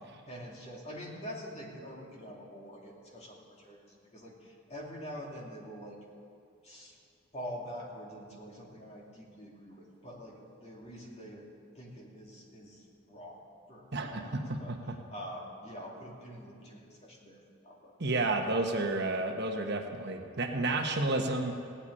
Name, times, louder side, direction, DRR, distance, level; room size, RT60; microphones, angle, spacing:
voice 1, 0.3-6.0 6.6-7.0 7.3-11.5 11.7-13.4 13.7-14.8 15.1-17.9, equal, 30° left, -2 dB, 2.6 m, -45 dB
voice 2, 13.9-14.8 18.0-21.5, right 2 dB, 50° right, 3 dB, 1.1 m, -31 dB
16.5 x 8.2 x 9.8 m, 2.5 s
head